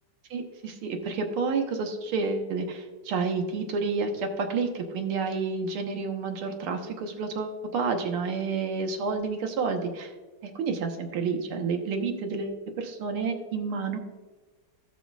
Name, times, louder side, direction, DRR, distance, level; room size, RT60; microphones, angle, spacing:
voice 1, 0.3-10.1 10.4-14.0, right 4 dB, 80° right, 4 dB, 2.1 m, -30 dB
17.5 x 5.9 x 2.4 m, 1.3 s
omnidirectional pair, 2.3 m